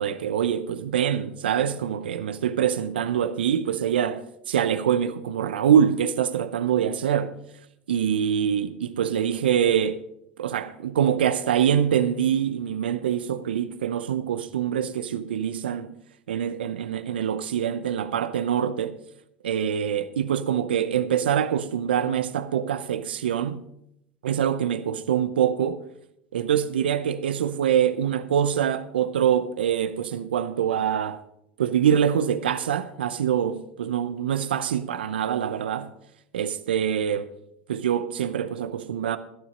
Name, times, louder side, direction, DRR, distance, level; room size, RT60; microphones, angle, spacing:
voice 1, 0.0-7.3 7.9-10.0 10.4-15.9 16.3-19.0 19.4-23.6 24.2-25.8 26.3-31.2 31.6-35.9 36.3-37.3 37.7-39.2, right 9 dB, 85° right, 0.7 m, -24 dB
12.0 x 10.0 x 5.3 m
hypercardioid pair, 85°, 5 cm